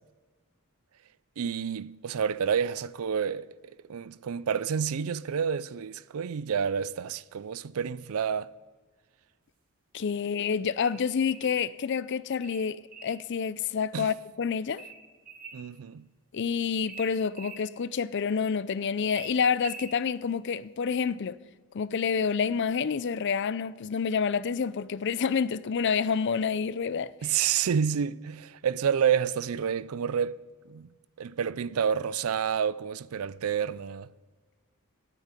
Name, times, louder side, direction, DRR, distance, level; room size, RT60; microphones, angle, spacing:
voice 1, 1.4-3.5 3.9-8.5 13.9-14.1 15.5-16.1 27.2-30.4 30.7-30.9 31.2-34.1, right 7 dB, 70° right, 0.4 m, -29 dB
voice 2, 9.9-12.8 13.0-14.8 16.3-21.4 21.7-27.3, left 6 dB, 55° left, 0.4 m, -28 dB
sound 1, 10.8-11.7 12.4-13.2 14.8-15.6 16.9-17.6 19.1-20.0, right 4 dB, 40° right, 1.8 m, -44 dB
11.0 x 9.2 x 9.8 m
head